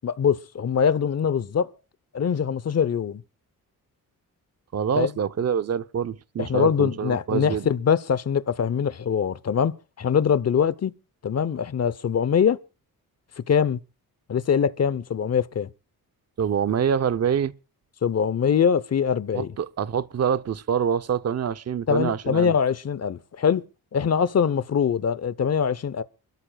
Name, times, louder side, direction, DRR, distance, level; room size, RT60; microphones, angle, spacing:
voice 1, 0.0-1.7 2.1-3.2 5.0-5.1 6.4-10.9 11.2-12.6 13.4-13.8 14.3-15.7 18.0-19.5 21.9-23.6 23.9-26.0, left 7 dB, 45° left, 0.8 m, -23 dB
voice 2, 4.7-7.7 16.4-17.5 19.3-22.5, right 8 dB, 45° right, 0.7 m, -25 dB
27.5 x 13.5 x 2.3 m
cardioid pair, 90°, 37 cm